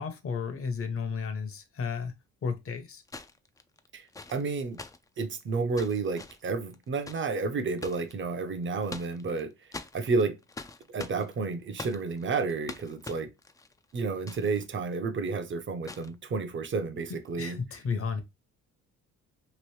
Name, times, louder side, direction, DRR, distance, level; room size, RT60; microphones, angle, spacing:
voice 1, 0.0-2.1 2.4-3.0 17.4-18.2, left 5 dB, 50° left, 0.8 m, -33 dB
sound 1, 1.2-1.3 3.1-8.1 8.6-9.4 9.7-14.7 14.9-15.0 15.8-16.2 17.1-17.3, left 3 dB, 10° left, 0.3 m, -44 dB
voice 2, 3.9-4.8 5.2-9.5 9.9-10.4 10.9-13.3 13.9-17.6, right 4 dB, 40° right, 0.7 m, -31 dB
3.0 x 2.5 x 3.1 m
cardioid pair, 90°, 30 cm